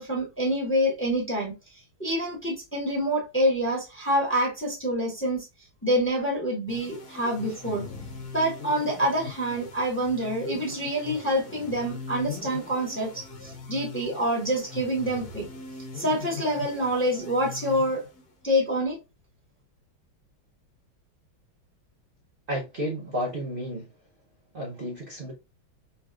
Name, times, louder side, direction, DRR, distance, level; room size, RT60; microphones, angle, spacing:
voice 1, 0.0-1.5 2.0-5.5 5.8-7.8 8.3-15.4 15.9-18.0 18.4-19.0, equal, 10° left, 0.9 m, -26 dB
sound 1, 6.7-18.5, left 4 dB, 85° left, 1.9 m, -41 dB
voice 2, 22.5-23.9 24.5-25.3, equal, 60° right, 0.5 m, -32 dB
4.1 x 3.1 x 2.4 m
omnidirectional pair, 2.2 m